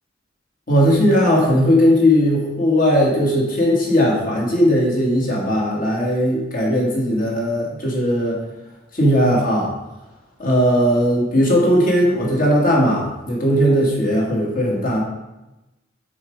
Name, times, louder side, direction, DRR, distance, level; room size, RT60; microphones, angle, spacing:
voice 1, 0.7-8.4 8.9-9.7 10.4-15.0, equal, 45° left, -3 dB, 2.1 m, -18 dB
6.3 x 5.2 x 4.7 m, 1.0 s
head